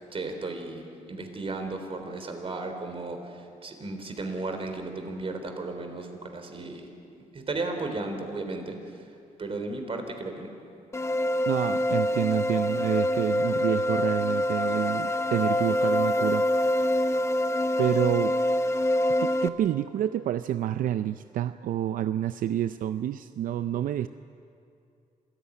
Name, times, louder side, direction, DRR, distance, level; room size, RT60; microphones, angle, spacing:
voice 1, 0.1-6.9 7.3-8.8 9.4-10.6, right 2 dB, 40° right, 5 dB, 3.8 m, -34 dB
sound 1, 10.9-19.5, left 1 dB, 20° left, 1.0 m, -25 dB
voice 2, 11.5-16.5 16.8-17.2 17.8-18.3 19.2-24.1, right 11 dB, 80° right, 12 dB, 0.5 m, -28 dB
27.0 x 14.5 x 9.8 m, 2.5 s
cardioid pair, 90°, 14 cm